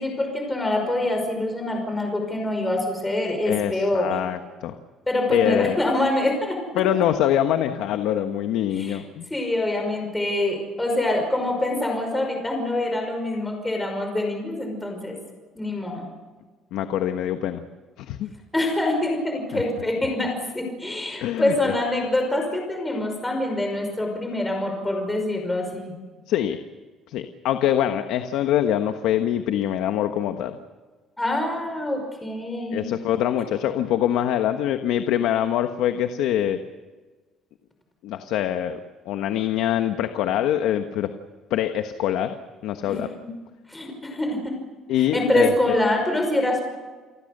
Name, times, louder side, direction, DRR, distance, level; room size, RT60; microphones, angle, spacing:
voice 1, 0.0-4.1 5.1-6.6 8.7-9.0 9.3-15.2 15.6-16.1 18.5-26.0 31.2-32.9 42.8-43.3 43.7-44.5 45.1-46.6, left 1 dB, 10° left, 3 dB, 5.5 m, -25 dB
voice 2, 3.4-4.7 5.3-5.8 6.8-9.3 16.7-17.6 18.0-18.3 19.5-19.6 21.2-21.5 26.3-26.6 27.1-30.5 32.7-36.6 38.0-38.8 39.0-41.1 41.5-42.3 42.6-43.1 44.9-45.5, left 11 dB, 80° left, 8 dB, 1.3 m, -24 dB
29.0 x 20.0 x 6.7 m, 1.4 s
cardioid pair, 150°, 0 cm